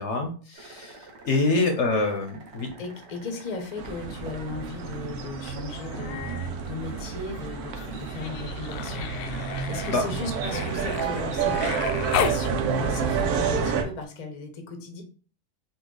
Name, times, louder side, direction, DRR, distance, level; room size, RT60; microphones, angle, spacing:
voice 1, 0.0-2.7 9.6-10.1, left 3 dB, 55° left, 4 dB, 0.9 m, -26 dB
sound 1, 0.5-11.2, right 2 dB, 50° right, 1.1 m, -48 dB
voice 2, 2.8-9.1 9.7-15.0, left 3 dB, 35° left, 4 dB, 0.7 m, -37 dB
sound 2, 3.8-13.8, right 6 dB, 75° right, 1.2 m, -29 dB
Human voice, 5.7-6.5 6.8-12.4 14.0-14.1, left 8 dB, 85° left, 1.1 m, -34 dB
5.5 x 2.4 x 3.8 m, 0.39 s
omnidirectional pair, 1.6 m